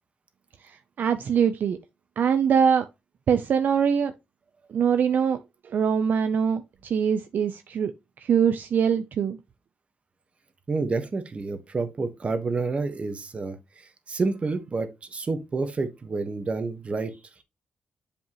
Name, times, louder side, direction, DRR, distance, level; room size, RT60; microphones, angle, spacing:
voice 1, 1.0-1.8 2.2-2.9 3.3-4.1 4.7-5.4 5.6-7.9 8.2-9.4, right 7 dB, 65° right, 0.6 m, -23 dB
voice 2, 10.7-17.2, right 3 dB, 35° right, 1.4 m, -29 dB
7.4 x 5.3 x 3.0 m
cardioid pair, 105°, 3 cm